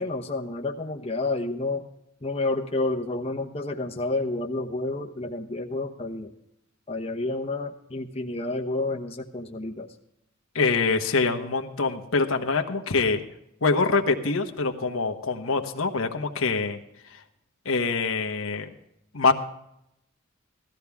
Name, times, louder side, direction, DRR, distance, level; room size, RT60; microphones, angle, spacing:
voice 1, 0.0-1.8 2.2-6.3 6.9-9.9, left 2 dB, 30° left, 2 dB, 1.0 m, -30 dB
voice 2, 10.5-13.2 13.6-16.8 17.6-18.7 19.1-19.3, left 4 dB, 80° left, 4 dB, 1.2 m, -24 dB
16.5 x 13.5 x 3.6 m, 0.80 s
head